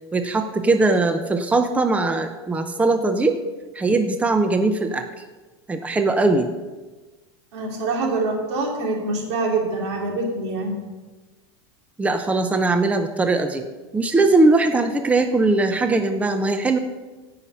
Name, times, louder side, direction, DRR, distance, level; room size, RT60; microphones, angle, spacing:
voice 1, 0.1-3.4 3.7-5.1 5.7-6.5 12.0-13.6 13.9-16.8, right 3 dB, 10° right, 7 dB, 0.7 m, -20 dB
voice 2, 7.5-10.8, right 3 dB, 80° right, 1 dB, 3.0 m, -25 dB
16.5 x 5.8 x 5.6 m, 1.2 s
supercardioid pair, 130°, 14 cm